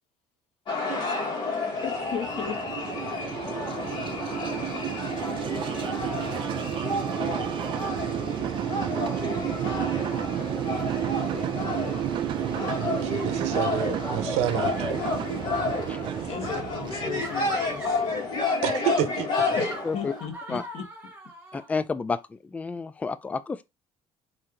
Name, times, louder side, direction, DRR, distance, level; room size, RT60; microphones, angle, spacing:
sound 1, 0.7-20.2, left 3 dB, 45° left, 1.6 m, -31 dB
sound 2, 1.7-18.4, right 10 dB, 50° right, 0.5 m, -31 dB
voice 1, 1.8-2.6 8.0-8.1 16.2-18.0 19.6-20.8, left 7 dB, 65° left, 1.4 m, -36 dB
voice 2, 12.8-15.1 18.6-19.4, right 10 dB, 85° right, 0.9 m, -29 dB
sound 3, 17.1-18.1 19.3-21.7, right 1 dB, 15° right, 1.4 m, -40 dB
voice 3, 21.5-23.6, left 4 dB, 15° left, 0.3 m, -30 dB
4.3 x 2.8 x 3.8 m
cardioid pair, 140°, 11 cm